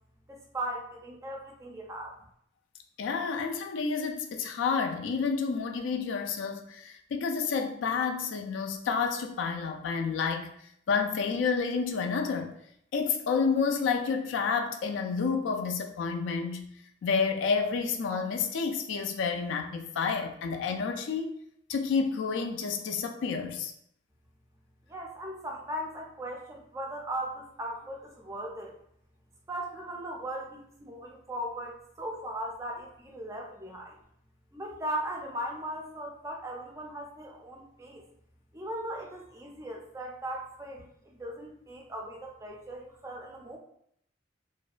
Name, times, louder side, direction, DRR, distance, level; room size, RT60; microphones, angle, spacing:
voice 1, 0.3-2.1 24.9-28.7 29.5-34.0 34.5-38.0 38.5-40.9 41.2-43.6, right 1 dB, 15° right, 0 dB, 0.3 m, -38 dB
voice 2, 3.0-10.5 10.9-12.5 12.9-16.7 17.0-21.4 21.7-23.7, left 5 dB, 80° left, 5 dB, 0.3 m, -29 dB
2.5 x 2.1 x 2.4 m, 0.71 s
head